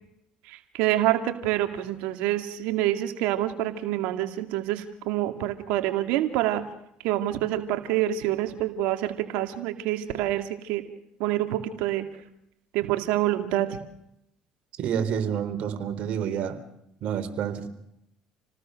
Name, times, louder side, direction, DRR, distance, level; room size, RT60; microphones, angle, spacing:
voice 1, 0.4-6.7 7.0-10.8 11.2-12.1 12.7-13.8, right 14 dB, 75° right, 7 dB, 2.3 m, -27 dB
voice 2, 14.8-16.6 17.0-17.7, right 8 dB, 60° right, 9 dB, 4.0 m, -28 dB
29.0 x 19.0 x 6.5 m, 0.78 s
supercardioid pair, 80°, 2 cm